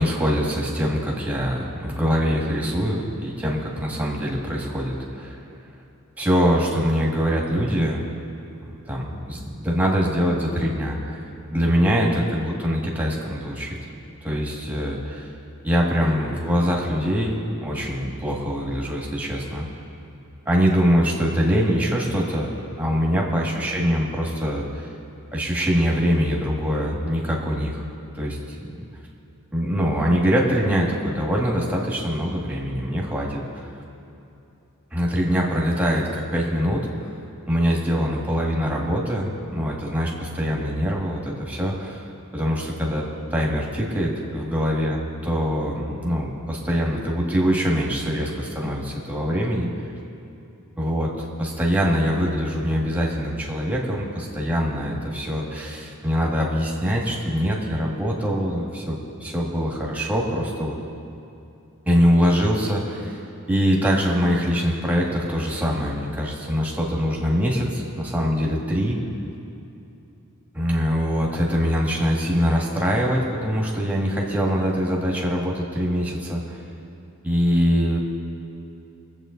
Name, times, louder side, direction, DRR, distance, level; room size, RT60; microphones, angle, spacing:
voice 1, 0.0-5.4 6.2-8.0 8.7-13.8 14.2-15.3 15.6-19.6 20.5-22.5 22.8-24.9 25.3-27.8 28.1-28.8 29.5-33.7 34.9-36.8 37.5-42.0 42.3-43.0 43.3-49.7 50.8-60.8 61.9-63.2 63.5-69.0 70.5-76.6 77.2-78.0, equal, 5° right, -3 dB, 1.8 m, -23 dB
22.5 x 7.9 x 3.9 m, 2.7 s
head